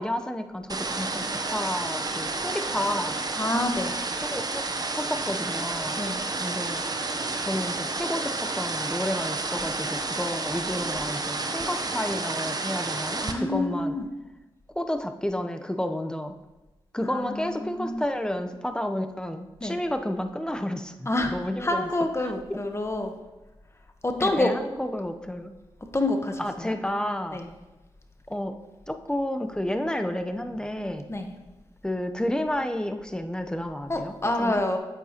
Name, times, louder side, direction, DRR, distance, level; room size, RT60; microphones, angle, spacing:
voice 1, 0.0-3.2 4.2-6.0 6.4-6.8 7.4-14.0 14.7-16.4 16.9-21.9 22.5-22.6 24.2-25.5 26.4-27.4 28.3-28.6 28.9-31.1 31.8-34.6, left 1 dB, 10° left, 7 dB, 0.8 m, -31 dB
sound 1, 0.7-13.3, right 3 dB, 40° right, 0.9 m, -30 dB
voice 2, 3.3-3.9 6.0-6.2 13.2-14.1 17.0-18.1 19.6-19.8 21.0-23.1 24.0-24.5 25.9-26.8 27.3-27.5 31.1-31.3 33.9-34.8, left 2 dB, 25° left, 5 dB, 1.2 m, -27 dB
8.9 x 8.2 x 3.0 m, 1.1 s
cardioid pair, 45°, 10 cm